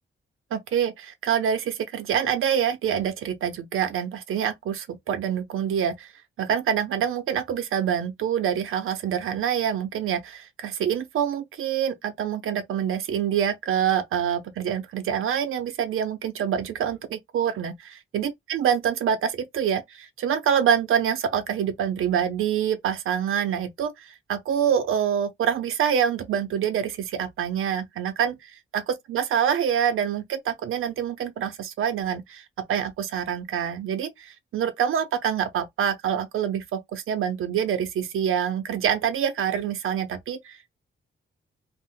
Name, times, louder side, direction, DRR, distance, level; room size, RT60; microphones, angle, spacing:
voice 1, 0.5-6.1 6.4-40.8, right 8 dB, 80° right, 0.6 m, -26 dB
2.5 x 2.0 x 3.6 m
wide cardioid pair, 140°, 21 cm